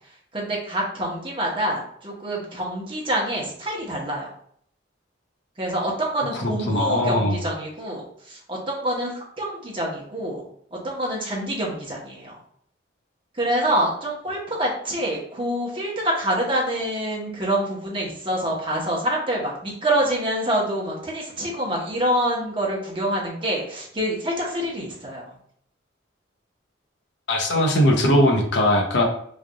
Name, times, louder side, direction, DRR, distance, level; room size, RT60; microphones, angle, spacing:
voice 1, 0.3-4.3 5.6-12.4 13.3-25.2, right 1 dB, 25° right, -3 dB, 1.0 m, -26 dB
voice 2, 6.3-7.4 27.3-29.0, left 1 dB, 65° left, 1 dB, 0.8 m, -20 dB
3.3 x 2.5 x 3.8 m, 0.63 s
head